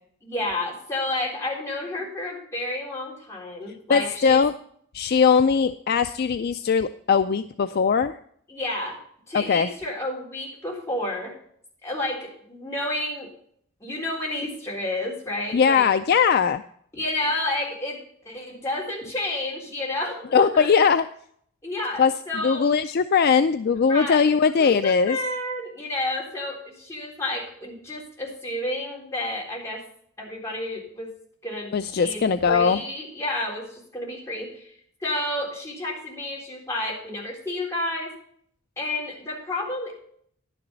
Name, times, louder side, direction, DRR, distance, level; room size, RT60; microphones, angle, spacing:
voice 1, 0.2-4.4 8.5-9.0 9.3-11.3 11.8-13.3 13.8-15.9 16.9-20.7 21.6-22.7 23.9-29.8 30.2-31.1 31.4-31.7 32.0-34.7 35.0-38.1 38.8-40.0, left 1 dB, 15° left, -4 dB, 3.7 m, -30 dB
voice 2, 3.9-4.5 4.9-8.2 9.3-9.7 15.5-16.6 20.3-21.0 22.0-22.1 22.4-25.2 31.7-32.8, left 6 dB, 45° left, 10 dB, 0.3 m, -20 dB
11.0 x 9.9 x 4.0 m, 0.63 s
head